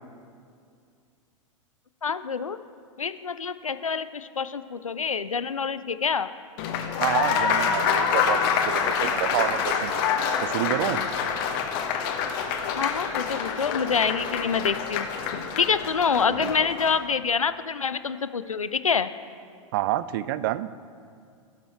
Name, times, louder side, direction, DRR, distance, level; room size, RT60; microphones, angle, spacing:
voice 1, 2.0-2.6 3.0-6.3 12.7-15.1 15.6-19.1, left 6 dB, 85° left, 13 dB, 0.4 m, -26 dB
Applause, 6.6-17.0, left 7 dB, 40° left, 1.0 m, -26 dB
voice 2, 7.0-11.0 16.3-16.5 19.7-20.7, right 14 dB, 40° right, 16 dB, 0.3 m, -29 dB
16.5 x 6.1 x 4.4 m, 2.4 s
figure-of-eight pair, 95°, 17 cm